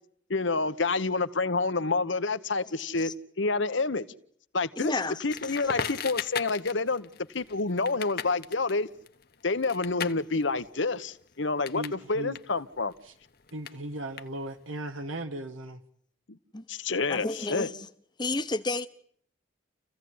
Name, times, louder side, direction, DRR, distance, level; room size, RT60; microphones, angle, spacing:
voice 1, 0.3-3.1 3.4-4.0 4.5-4.9 5.2-7.1 7.3-8.9 9.4-11.8 12.1-12.9 16.7-17.7, left 3 dB, 70° left, 1.1 m, -28 dB
voice 2, 4.8-5.2 5.6-5.7 16.5-16.6 17.1-17.9 18.2-18.9, left 2 dB, 20° left, 1.0 m, -31 dB
Crackle, 5.3-12.0 12.3-14.7, left 6 dB, 50° left, 1.1 m, -38 dB
voice 3, 11.7-12.4 13.0-13.1 13.5-15.8, right 1 dB, 90° right, 1.5 m, -37 dB
29.0 x 15.5 x 9.5 m
head